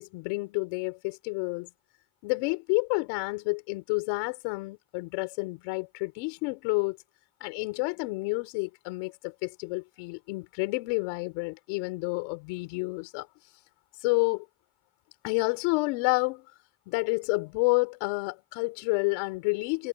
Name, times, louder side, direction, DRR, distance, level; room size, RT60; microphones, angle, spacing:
voice 1, 0.0-1.7 2.2-7.0 7.4-13.3 14.0-14.5 15.2-16.5 16.9-19.9, left 28 dB, 90° left, 4.7 m, -29 dB
supercardioid pair, 70°, 46 cm